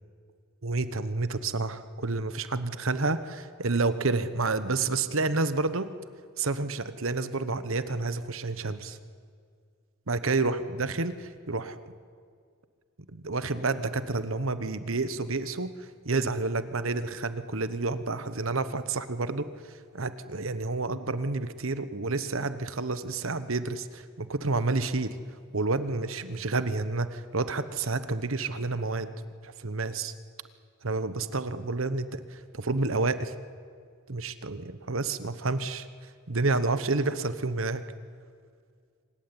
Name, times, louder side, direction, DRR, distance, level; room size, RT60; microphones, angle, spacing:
voice 1, 0.6-5.9 6.4-9.0 10.1-11.8 13.1-25.2 25.5-29.1 29.4-30.1 30.8-33.3 34.1-35.9 36.3-37.8, right 3 dB, 70° right, 12 dB, 1.1 m, -29 dB
25.5 x 16.0 x 9.9 m, 2.1 s
head